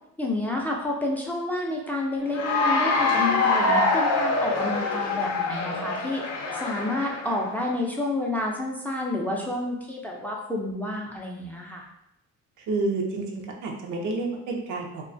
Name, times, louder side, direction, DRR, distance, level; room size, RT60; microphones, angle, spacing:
voice 1, 0.2-6.2 6.6-11.8, left 2 dB, 5° left, -2 dB, 0.4 m, -29 dB
Cheering / Applause, 2.3-7.5, left 3 dB, 60° left, 0.5 m, -25 dB
voice 2, 12.6-15.0, right 3 dB, 80° right, 1 dB, 0.6 m, -29 dB
2.3 x 2.2 x 2.5 m, 0.81 s
cardioid pair, 90°, 30 cm